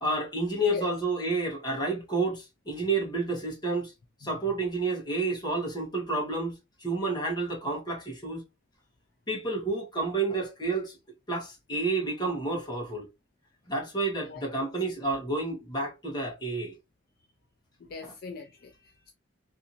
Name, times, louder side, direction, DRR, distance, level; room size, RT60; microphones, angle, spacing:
voice 1, 0.0-3.9 4.2-8.4 9.3-11.0 11.3-13.1 13.7-16.8 18.0-18.1, right 2 dB, 20° left, 0.9 m, -30 dB
voice 2, 17.8-19.1, left 5 dB, 50° left, 0.3 m, -40 dB
2.6 x 2.5 x 2.7 m
head